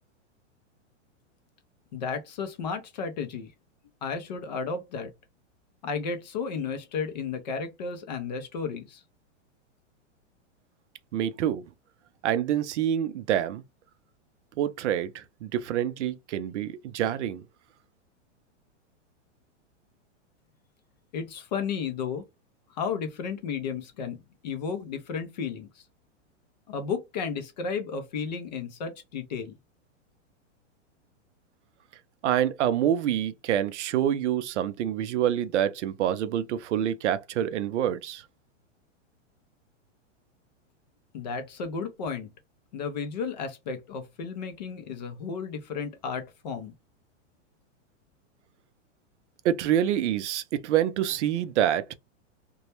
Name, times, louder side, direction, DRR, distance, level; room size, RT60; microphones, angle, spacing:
voice 1, 1.9-3.5 4.0-5.1 5.8-9.0 21.1-22.2 22.7-25.8 26.7-29.6 41.1-42.3 42.7-46.7, left 5 dB, 35° left, 0.4 m, -33 dB
voice 2, 11.1-11.6 12.2-13.6 14.6-17.4 32.2-38.2 49.4-51.9, right 10 dB, 70° right, 0.5 m, -26 dB
2.2 x 2.0 x 2.8 m
supercardioid pair, 165°, 37 cm